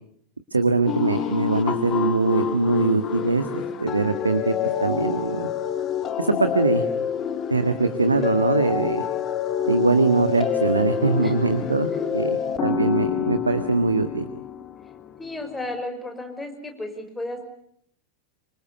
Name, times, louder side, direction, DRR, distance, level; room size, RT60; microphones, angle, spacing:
voice 1, 0.5-4.5 4.8-5.5 6.2-6.8 7.5-9.0 9.7-14.3, right 3 dB, 80° right, 9 dB, 1.7 m, -22 dB
sound 1, 0.9-15.8, left 8 dB, 30° left, 2.1 m, -28 dB
voice 2, 15.2-17.5, left 2 dB, 10° left, 5 dB, 5.8 m, -33 dB
27.5 x 24.5 x 8.3 m, 0.68 s
figure-of-eight pair, 90°, 0 cm